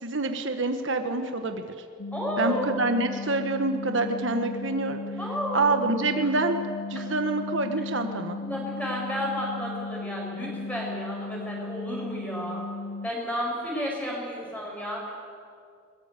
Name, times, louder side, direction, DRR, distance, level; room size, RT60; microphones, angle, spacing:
voice 1, 0.0-1.7 2.4-5.0 5.5-6.6 6.9-8.4, right 2 dB, 65° right, 6 dB, 1.4 m, -26 dB
sound 1, 2.0-13.1, left 3 dB, 55° left, 0.6 m, -36 dB
voice 2, 2.1-2.6 5.2-5.7 8.4-12.6 13.0-15.1, equal, 5° left, -2 dB, 6.6 m, -32 dB
22.0 x 21.5 x 8.3 m, 2.2 s
head